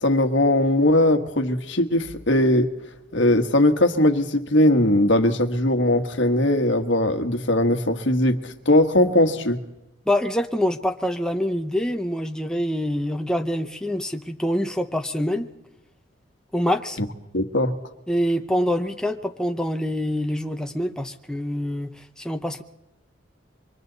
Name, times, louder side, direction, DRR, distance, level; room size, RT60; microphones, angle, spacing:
voice 1, 0.0-2.7 3.1-9.6 17.0-17.1 17.3-17.7, left 1 dB, 65° left, 7 dB, 1.5 m, -20 dB
voice 2, 10.1-15.5 16.5-17.0 18.1-22.6, equal, 5° left, 5 dB, 0.7 m, -25 dB
27.0 x 24.5 x 4.0 m, 0.95 s
head